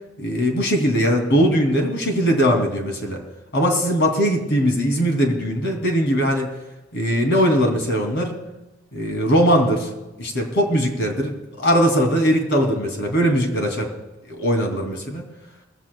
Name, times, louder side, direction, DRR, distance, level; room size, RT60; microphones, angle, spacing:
voice 1, 0.2-3.2 3.5-6.5 6.9-8.4 8.9-9.9 10.2-13.9 14.3-15.2, equal, 60° left, 3 dB, 2.7 m, -20 dB
20.0 x 15.5 x 2.2 m, 1.0 s
head